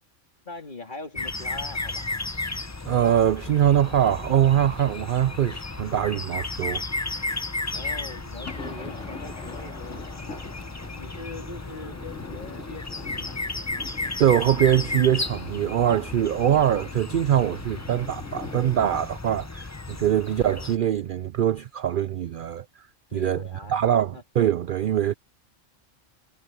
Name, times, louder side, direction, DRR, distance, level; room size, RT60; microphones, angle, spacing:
voice 1, 0.4-2.1 7.7-10.5 11.0-13.4 23.1-24.2, left 2 dB, 40° left, 2.9 m, -41 dB
sound 1, 1.2-20.8, left 2 dB, 20° left, 0.5 m, -34 dB
sound 2, 1.4-19.1, left 3 dB, 80° left, 3.3 m, -45 dB
voice 2, 2.9-6.8 7.1-7.2 14.2-22.6 23.1-23.4 23.7-25.1, right 10 dB, 60° right, 0.5 m, -23 dB
omnidirectional pair, 1.3 m